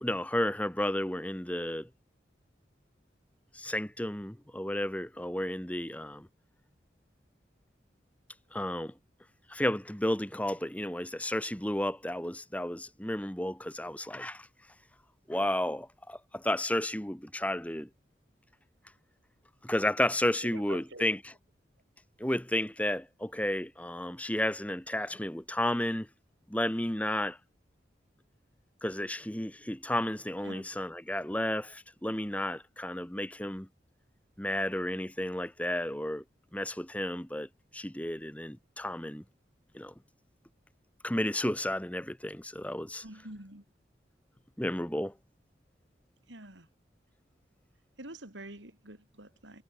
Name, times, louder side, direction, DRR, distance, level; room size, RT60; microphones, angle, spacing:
voice 1, 0.0-1.9 3.5-6.3 8.5-8.9 9.5-14.5 15.3-17.9 19.6-21.2 22.2-26.1 26.5-27.4 28.8-33.7 34.4-36.2 36.5-37.5 37.7-39.2 39.7-39.9 41.0-43.0 44.6-45.1, left 1 dB, 10° left, 1.3 m, -32 dB
voice 2, 20.4-21.0 30.4-30.6 43.0-43.6 46.3-46.7 48.0-49.6, right 1 dB, 80° right, 5.9 m, -47 dB
head